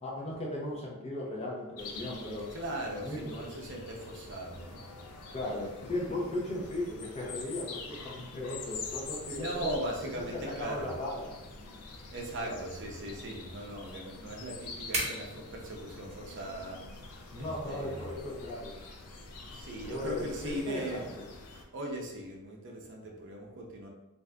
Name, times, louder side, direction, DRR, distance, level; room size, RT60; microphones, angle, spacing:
voice 1, 0.0-2.5 2.9-3.4 5.3-9.7 10.6-11.3 12.4-12.6 17.3-18.8 19.9-21.1, left 1 dB, 30° left, -4 dB, 0.7 m, -37 dB
sound 1, 1.8-21.6, left 4 dB, 90° left, 0.5 m, -46 dB
voice 2, 2.5-4.8 9.3-10.9 12.1-16.8 17.4-18.1 19.5-21.2 21.7-23.9, right 1 dB, 55° right, 0 dB, 0.6 m, -39 dB
sound 2, 8.7-20.6, right 1 dB, 30° right, 1.1 m, -45 dB
2.6 x 2.4 x 3.3 m, 0.97 s
head